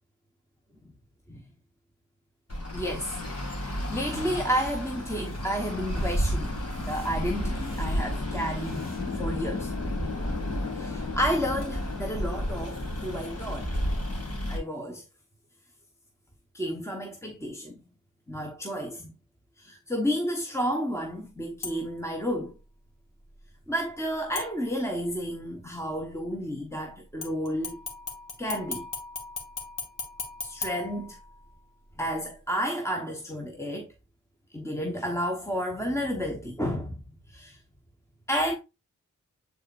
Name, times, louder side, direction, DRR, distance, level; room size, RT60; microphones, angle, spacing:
Traffic noise roadway noise, 2.5-14.6, left 1 dB, 50° left, 2.6 m, -31 dB
voice 1, 2.7-3.2 3.9-8.9 9.2-9.7 10.7-13.7 14.5-15.0 16.5-17.8 18.3-19.1 19.6-22.6 23.7-27.8 28.4-28.9 30.4-31.2 32.0-33.9 34.5-37.0 37.3-37.6 38.3-38.5, equal, 10° left, 1.2 m, -31 dB
sound 1, 3.9-4.5 4.9-5.5 5.9-6.4 6.8-8.1 8.5-9.2, left 1 dB, 30° left, 2.5 m, -49 dB
sound 2, 21.6-22.1 24.3-25.1 27.2-31.6 32.0-32.1, left 4 dB, 75° left, 1.9 m, -39 dB
8.8 x 4.1 x 2.6 m
cardioid pair, 50°, 31 cm